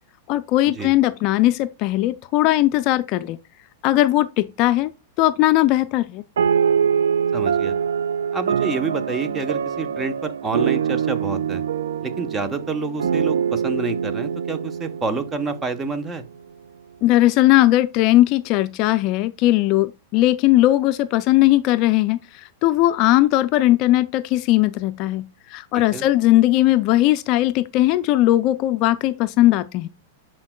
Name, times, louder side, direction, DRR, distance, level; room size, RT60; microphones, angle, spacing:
voice 1, 0.3-3.4 3.8-4.9 5.2-6.2 17.0-29.9, left 16 dB, 45° left, 0.3 m, -18 dB
sound 1, 6.4-16.1, right 7 dB, 85° right, 0.4 m, -24 dB
voice 2, 7.3-7.7 8.3-11.6 12.0-16.2 25.9-26.0, right 4 dB, 20° right, 0.8 m, -28 dB
10.5 x 4.4 x 2.2 m
hypercardioid pair, 120°, 0 cm